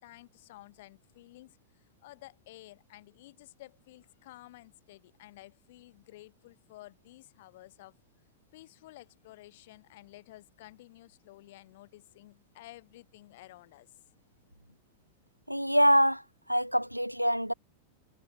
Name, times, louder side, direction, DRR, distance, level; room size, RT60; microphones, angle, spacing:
voice 1, 0.0-7.9 8.5-13.9, left 17 dB, 55° left, 3.7 m, -53 dB
voice 2, 15.5-16.2 16.5-17.5, equal, 90° right, 0.6 m, -24 dB
figure-of-eight pair, 90°, 0 cm